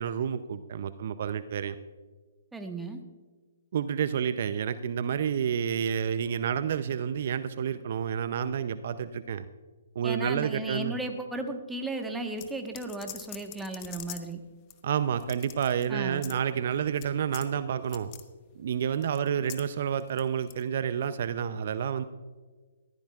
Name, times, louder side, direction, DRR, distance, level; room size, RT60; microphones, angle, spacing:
voice 1, 0.0-1.8 3.7-9.5 10.0-11.0 14.8-18.1 18.6-22.0, right 8 dB, 55° right, 13 dB, 0.5 m, -29 dB
voice 2, 2.5-3.0 10.0-14.4 15.9-16.3, right 2 dB, 5° right, 4 dB, 1.3 m, -35 dB
sound 1, 12.4-14.3 14.7-14.8 15.1-15.9 16.2-16.4 16.9-17.1 17.3-17.5 17.8-18.2 19.0-19.7 20.0-20.6, left 14 dB, 30° left, 1.0 m, -44 dB
19.5 x 14.5 x 2.4 m, 1.4 s
hypercardioid pair, 135°, 0 cm